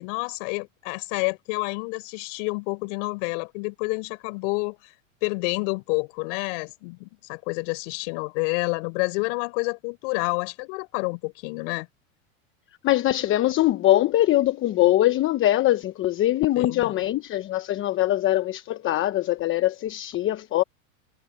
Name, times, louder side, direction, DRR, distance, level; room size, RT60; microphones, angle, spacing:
voice 1, 0.0-4.9 5.2-11.9 16.6-17.0, left 33 dB, 60° left, 6.2 m, -29 dB
voice 2, 12.8-20.6, left 14 dB, 30° left, 1.0 m, -22 dB
supercardioid pair, 130°, 41 cm